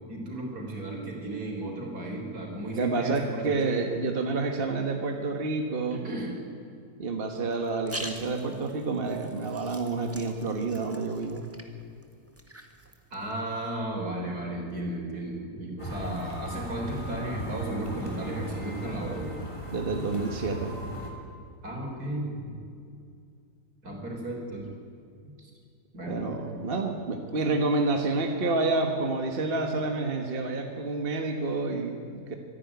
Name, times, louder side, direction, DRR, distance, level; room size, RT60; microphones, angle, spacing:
voice 1, 0.1-3.7 5.9-6.3 13.1-19.3 21.6-22.6 23.8-24.6 25.2-25.5 25.9-26.6, right 1 dB, 70° right, 0 dB, 4.5 m, -34 dB
voice 2, 2.8-6.0 7.0-11.4 19.7-20.7 26.1-32.4, right 3 dB, 35° right, 4 dB, 1.5 m, -29 dB
sound 1, 7.5-13.6, right 1 dB, 10° right, 1.6 m, -45 dB
sound 2, 15.8-21.1, equal, 20° left, 3.1 m, -38 dB
25.0 x 11.0 x 9.5 m, 2.4 s
omnidirectional pair, 1.7 m